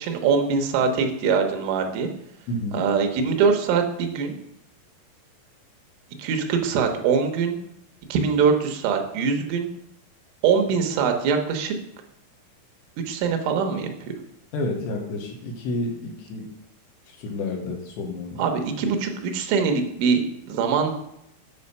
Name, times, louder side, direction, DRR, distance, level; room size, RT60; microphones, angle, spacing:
voice 1, 0.0-2.1 2.7-4.4 6.2-7.6 8.1-9.7 10.4-11.7 13.1-14.1 18.4-20.2 20.5-21.0, right 6 dB, 85° right, 4 dB, 3.6 m, -23 dB
voice 2, 2.5-2.8 14.5-16.5 17.2-18.4, left 2 dB, 70° left, 1 dB, 3.3 m, -30 dB
8.9 x 5.2 x 5.4 m, 0.80 s
omnidirectional pair, 5.5 m